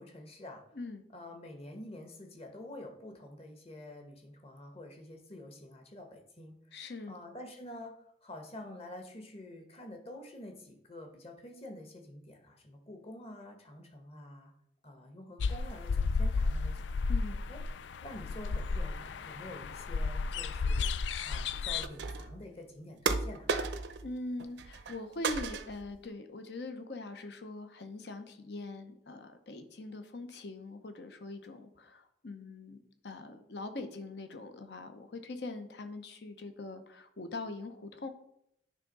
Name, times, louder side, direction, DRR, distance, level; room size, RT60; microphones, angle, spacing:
voice 1, 0.0-0.8 1.1-6.7 7.1-14.5 14.8-16.9 17.5-17.6 18.0-20.9 21.2-23.5, left 1 dB, 35° left, 4 dB, 1.2 m, -48 dB
voice 2, 6.7-7.1 17.1-17.5 24.0-32.8 33.0-38.1, left 2 dB, 65° left, 8 dB, 0.9 m, -42 dB
sound 1, 15.4-21.9, left 4 dB, 80° left, 0.4 m, -33 dB
sound 2, 21.8-22.4 23.1-24.1 24.4-25.0 25.2-25.9, right 4 dB, 80° right, 0.7 m, -34 dB
9.7 x 3.6 x 5.3 m, 0.74 s
head